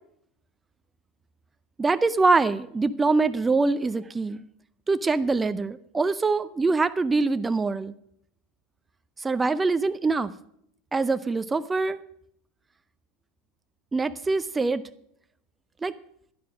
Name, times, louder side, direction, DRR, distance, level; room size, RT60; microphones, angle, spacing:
voice 1, 1.8-4.4 4.9-7.9 9.2-10.3 10.9-12.0 13.9-14.8 15.8-15.9, right 3 dB, 20° right, 12 dB, 0.6 m, -24 dB
11.0 x 10.5 x 6.1 m, 0.71 s
hypercardioid pair, 85°, 0 cm